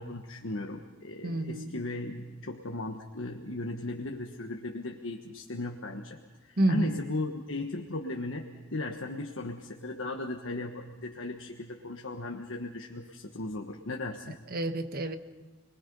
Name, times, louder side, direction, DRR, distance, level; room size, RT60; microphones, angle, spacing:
voice 1, 0.0-14.4, left 2 dB, 80° left, 2 dB, 1.4 m, -37 dB
voice 2, 1.2-1.7 6.6-7.0 14.5-15.2, right 1 dB, 50° right, 8 dB, 1.2 m, -28 dB
30.0 x 21.5 x 5.5 m, 1.3 s
head